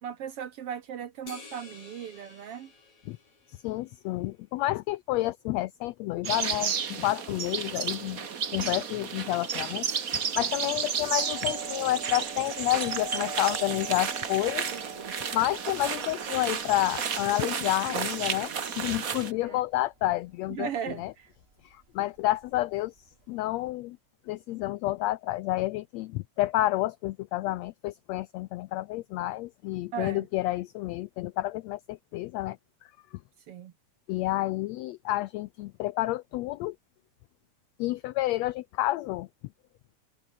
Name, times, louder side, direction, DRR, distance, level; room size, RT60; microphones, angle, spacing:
voice 1, 0.0-2.7 14.7-15.1 19.4-19.6 20.5-21.3 29.9-30.3 33.5-33.7, right 8 dB, 65° right, 1.6 m, -37 dB
sound 1, 1.3-4.0, left 4 dB, 60° left, 7.2 m, -50 dB
voice 2, 3.5-9.9 10.1-14.7 15.3-21.1 21.6-22.9 23.3-24.0 24.3-32.6 34.1-36.7 37.8-39.3, left 16 dB, 85° left, 1.5 m, -30 dB
sound 2, 6.2-19.3, right 7 dB, 45° right, 1.1 m, -32 dB
Doorbell, 11.1-20.5 20.8-20.9 21.5-21.8 22.2-23.6, right 3 dB, 20° right, 2.3 m, -42 dB
omnidirectional pair, 3.6 m